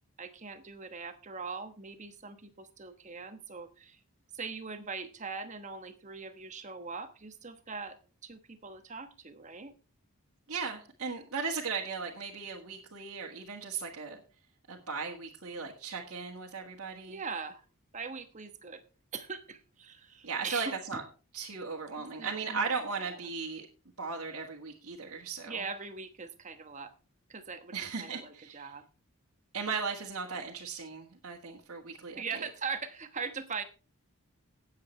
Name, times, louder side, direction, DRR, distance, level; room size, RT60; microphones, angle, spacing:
voice 1, 0.2-4.0 4.3-8.0 8.2-9.7 15.6-15.7 17.1-17.6 17.9-18.8 19.1-21.0 21.9-22.7 23.0-23.1 25.5-26.9 27.3-28.9 32.2-33.6, right 5 dB, 30° right, 8 dB, 1.1 m, -41 dB
voice 2, 10.5-14.2 14.7-17.2 20.2-21.0 21.3-23.7 24.0-25.6 27.7-28.7 29.5-32.4, right 5 dB, 65° right, -3 dB, 1.7 m, -37 dB
18.5 x 7.6 x 3.2 m, 0.34 s
head